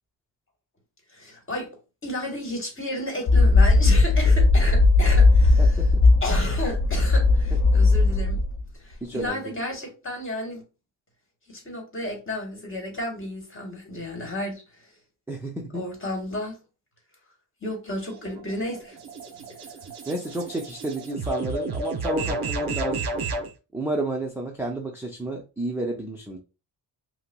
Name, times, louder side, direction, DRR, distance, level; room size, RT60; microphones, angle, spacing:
voice 1, 1.1-1.7 2.0-5.8 6.2-8.4 8.7-10.6 11.5-14.6 15.7-16.6 17.6-19.0 19.8-19.9 22.2-22.3, left 1 dB, 25° left, 1.3 m, -32 dB
sound 1, 3.3-8.6, left 3 dB, 50° left, 0.5 m, -18 dB
voice 2, 5.6-6.0 9.0-9.5 15.3-15.9 20.1-23.1 23.7-26.4, right 1 dB, 5° right, 0.4 m, -31 dB
sound 2, 18.1-23.5, right 3 dB, 50° right, 0.8 m, -32 dB
5.4 x 2.0 x 2.2 m
cardioid pair, 115°, 46 cm